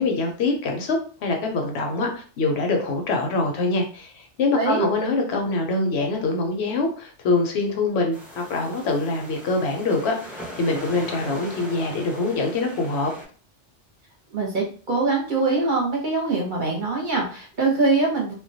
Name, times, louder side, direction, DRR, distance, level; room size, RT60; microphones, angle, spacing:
voice 1, 0.0-13.1, left 3 dB, 70° left, 2 dB, 0.8 m, -24 dB
sound 1, 8.1-13.2, equal, ahead, 0.5 m, -40 dB
voice 2, 14.3-18.3, right 3 dB, 50° right, -2 dB, 0.8 m, -23 dB
2.2 x 2.1 x 2.6 m, 0.41 s
omnidirectional pair, 1.2 m